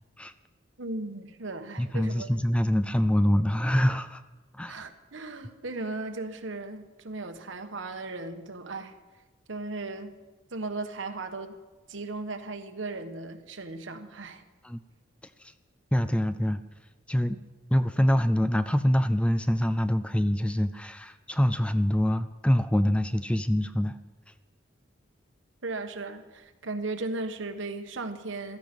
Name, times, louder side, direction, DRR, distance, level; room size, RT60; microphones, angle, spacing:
voice 1, 0.8-2.3 4.7-8.9 9.5-10.1 10.5-11.5 11.9-14.4 25.6-28.6, right 3 dB, 75° right, 7 dB, 1.2 m, -36 dB
voice 2, 1.8-4.2 4.5-4.9 14.6-14.8 15.2-15.5 15.9-16.6 17.1-17.4 17.7-24.0, equal, 5° left, 11 dB, 0.4 m, -25 dB
16.0 x 13.5 x 5.3 m, 1.2 s
head